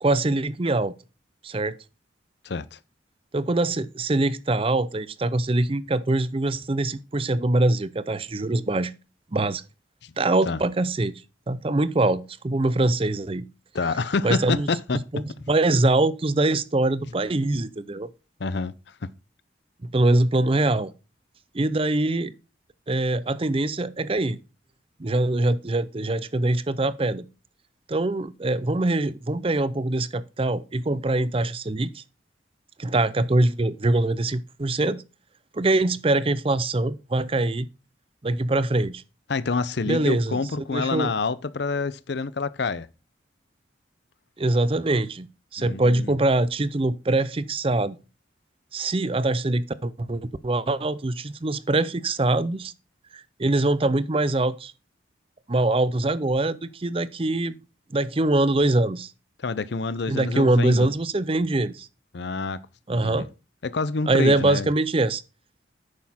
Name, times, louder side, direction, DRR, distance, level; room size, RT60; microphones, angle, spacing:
voice 1, 0.0-0.9 1.4-1.8 3.3-8.9 9.3-9.6 10.2-11.1 11.5-13.4 14.2-14.7 15.1-18.1 19.8-20.9 21.5-22.3 22.9-24.4 25.0-27.2 27.9-32.0 32.8-35.0 35.5-37.7 38.2-39.0 39.9-40.4 40.7-41.1 44.4-45.3 45.5-48.0 48.7-52.7 53.1-54.7 55.5-57.5 57.9-59.1 60.1-61.9 62.9-63.3 64.1-65.2, right 2 dB, 30° right, 0.5 m, -23 dB
voice 2, 2.4-2.8 10.0-10.1 10.5-10.6 13.7-15.0 18.4-18.7 19.0-19.1 39.3-42.9 45.6-46.1 59.4-60.9 62.1-62.6 62.9-63.3 63.6-64.7, left 4 dB, 60° left, 0.6 m, -27 dB
9.5 x 6.4 x 4.2 m
head